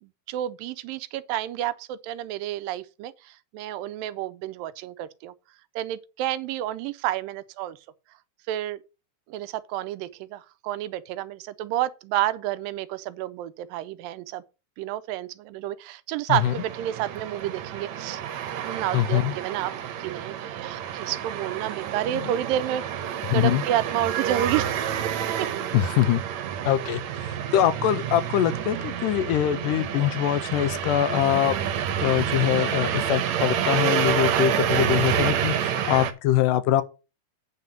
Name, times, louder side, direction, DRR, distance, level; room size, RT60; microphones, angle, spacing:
voice 1, 0.0-5.3 5.8-7.8 8.5-8.8 9.3-14.4 14.8-18.2 18.6-19.7 20.0-22.8 23.3-24.7 25.4-25.5, right 12 dB, 85° right, 2.3 m, -30 dB
sound 1, 16.3-36.1, right 9 dB, 70° right, 2.0 m, -28 dB
voice 2, 18.9-19.3 22.2-22.3 23.3-23.6 25.7-26.2 26.6-31.6 32.0-36.8, left 12 dB, 80° left, 2.2 m, -23 dB
9.3 x 4.0 x 7.3 m
omnidirectional pair, 4.0 m